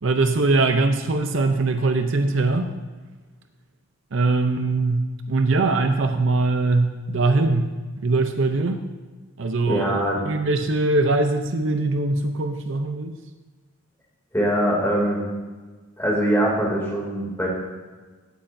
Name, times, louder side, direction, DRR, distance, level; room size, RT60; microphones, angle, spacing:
voice 1, 0.0-2.7 4.1-7.7 8.0-8.8 9.4-9.8 10.2-13.1, right 3 dB, 60° right, 7 dB, 0.6 m, -21 dB
voice 2, 9.7-10.2 14.3-15.2 16.0-17.5, right 1 dB, 10° left, -4 dB, 2.7 m, -22 dB
16.0 x 8.8 x 2.7 m, 1.3 s
head